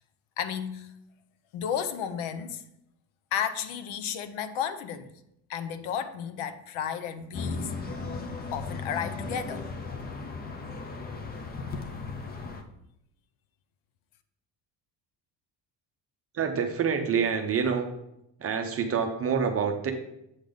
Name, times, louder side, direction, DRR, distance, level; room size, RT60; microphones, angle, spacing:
voice 1, 0.4-1.0 1.5-2.6 3.3-5.1 5.5-7.7 8.5-9.7, left 8 dB, 80° left, 0.8 m, -33 dB
sound 1, 7.3-12.6, left 4 dB, 20° left, 0.4 m, -36 dB
voice 2, 16.3-17.9 18.4-19.9, right 6 dB, 30° right, 0.6 m, -27 dB
7.9 x 4.0 x 5.0 m
cardioid pair, 175°, 48 cm